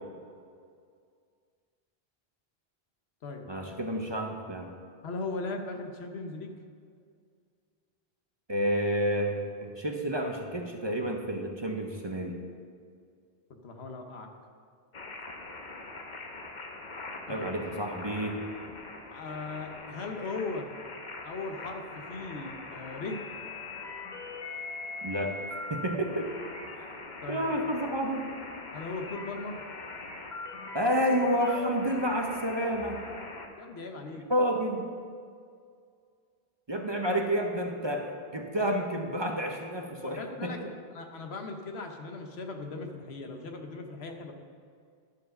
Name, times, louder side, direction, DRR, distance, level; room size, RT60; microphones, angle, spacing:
voice 1, 3.5-4.7 8.5-12.4 17.3-18.4 25.0-25.4 25.7-26.3 26.8-26.9 27.3-28.3 30.7-33.0 34.3-34.9 36.7-40.5, equal, 30° right, 2 dB, 0.7 m, -30 dB
voice 2, 5.0-6.6 13.6-14.3 17.3-17.5 19.1-20.7 21.2-23.2 27.2-27.4 28.7-29.6 33.6-34.2 40.0-40.6 40.9-44.3, left 3 dB, 85° left, 4 dB, 1.2 m, -38 dB
sound 1, 14.9-33.5, left 3 dB, 50° left, 1.0 m, -42 dB
11.5 x 4.8 x 6.5 m, 2.2 s
omnidirectional pair, 1.0 m